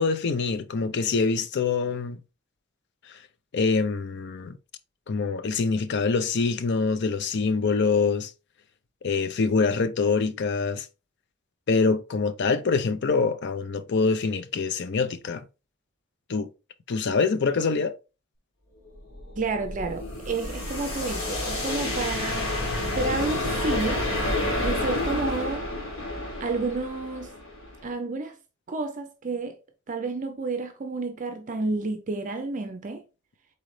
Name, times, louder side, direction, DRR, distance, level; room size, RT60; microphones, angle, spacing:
voice 1, 0.0-2.2 3.1-3.2 3.5-4.6 5.1-8.3 9.0-10.9 11.7-15.4 16.3-16.5 16.9-18.0, left 4 dB, 60° left, 0.5 m, -25 dB
sound 1, 19.0-27.9, left 1 dB, 80° left, 1.9 m, -29 dB
voice 2, 19.4-22.5 22.9-24.1 24.6-25.7 26.4-27.3 27.8-28.4 28.7-29.6 29.9-33.0, right 3 dB, 40° right, 0.5 m, -30 dB
4.2 x 3.9 x 3.2 m
head